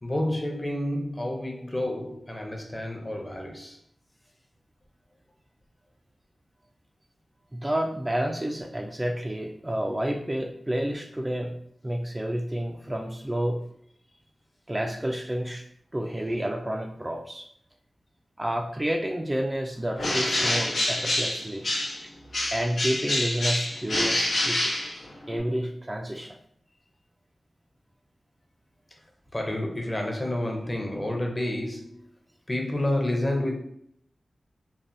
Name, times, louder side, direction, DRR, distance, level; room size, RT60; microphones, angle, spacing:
voice 1, 0.0-3.8 16.1-16.5 29.3-32.1 32.5-33.6, left 1 dB, 25° left, 1 dB, 0.6 m, -30 dB
voice 2, 7.5-11.5 11.8-13.6 14.7-15.6 15.9-17.5 18.4-21.7 22.5-24.7 25.3-26.4, right 1 dB, 20° right, 2 dB, 0.3 m, -30 dB
Bird, 20.0-22.0 22.3-25.4, left 1 dB, 70° left, 0.7 m, -27 dB
3.3 x 2.1 x 2.6 m, 0.67 s
wide cardioid pair, 65°, 0 cm